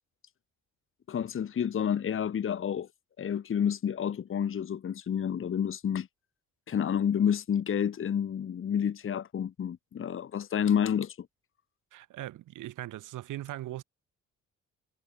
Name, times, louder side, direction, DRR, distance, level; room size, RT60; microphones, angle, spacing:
voice 1, 1.1-2.9 3.2-6.1 6.7-11.3, left 8 dB, 45° left, 1.2 m, -29 dB
voice 2, 11.9-13.8, right 14 dB, 85° right, 5.2 m, -39 dB
cardioid pair, 90°, 30 cm